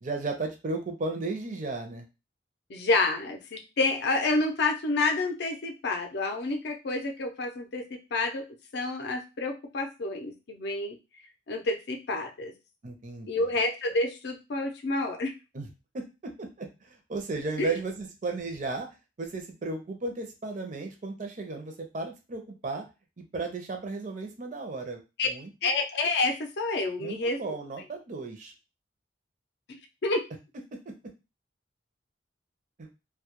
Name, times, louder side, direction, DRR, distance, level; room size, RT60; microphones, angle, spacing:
voice 1, 0.0-2.1 12.8-13.4 15.5-15.7 15.9-18.9 19.2-22.9 23.2-25.5 27.0-28.5 30.9-31.0 32.8-32.9, right 3 dB, 45° right, 5 dB, 0.5 m, -35 dB
voice 2, 2.7-8.4 8.7-11.0 11.5-12.5 13.3-15.3 17.6-17.7 25.2-25.3 25.6-27.5 29.7-30.2, left 3 dB, 65° left, 4 dB, 0.5 m, -29 dB
2.2 x 2.0 x 2.8 m, 0.28 s
head